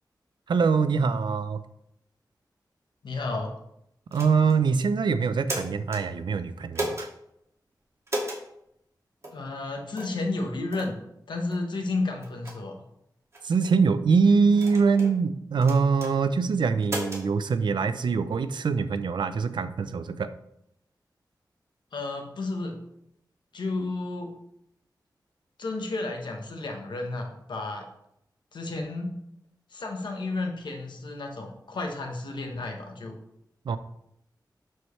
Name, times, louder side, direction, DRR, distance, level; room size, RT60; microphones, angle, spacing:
voice 1, 0.5-1.6 4.1-7.1 13.4-20.3 33.7-33.8, right 5 dB, 85° right, 12 dB, 0.5 m, -23 dB
voice 2, 3.0-3.5 9.3-11.0 11.3-12.8 21.9-22.8 23.5-24.4 25.6-27.9 28.5-29.2 29.7-33.2, left 2 dB, 85° left, 3 dB, 1.2 m, -32 dB
sound 1, 4.1-4.6 5.2-6.0 6.7-7.1 8.1-8.4 9.2-9.4 10.0-10.2 10.7-10.9 11.5-11.6 12.2-12.6 13.3-13.7 14.5-15.1 15.6-16.1 16.8-17.2, right 1 dB, 35° right, 2.1 m, -34 dB
12.0 x 4.5 x 3.2 m, 0.78 s
wide cardioid pair, 80°, 8 cm